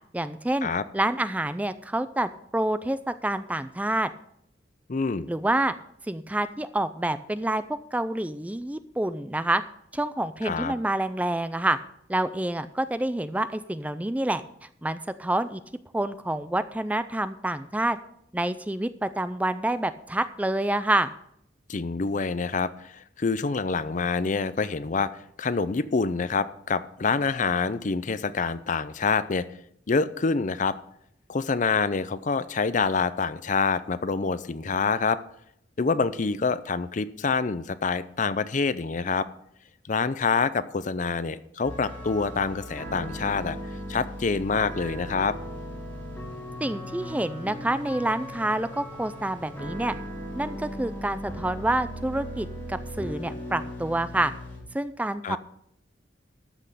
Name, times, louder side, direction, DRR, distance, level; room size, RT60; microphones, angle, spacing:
voice 1, 0.1-4.1 5.3-5.7 6.1-7.6 7.9-9.6 9.9-11.8 12.1-14.4 14.8-15.6 15.9-18.0 18.3-21.1 46.6-49.9 50.3-54.3 54.7-55.4, right 1 dB, 10° right, 12 dB, 0.4 m, -27 dB
voice 2, 4.9-5.3 10.4-10.7 21.7-25.1 25.4-29.5 29.9-30.8 31.3-35.2 35.8-39.3 39.9-43.6 43.9-45.4 55.2-55.4, left 4 dB, 45° left, 15 dB, 0.5 m, -26 dB
sound 1, 41.6-54.6, equal, 10° left, 4.0 m, -38 dB
13.0 x 6.2 x 6.7 m, 0.72 s
head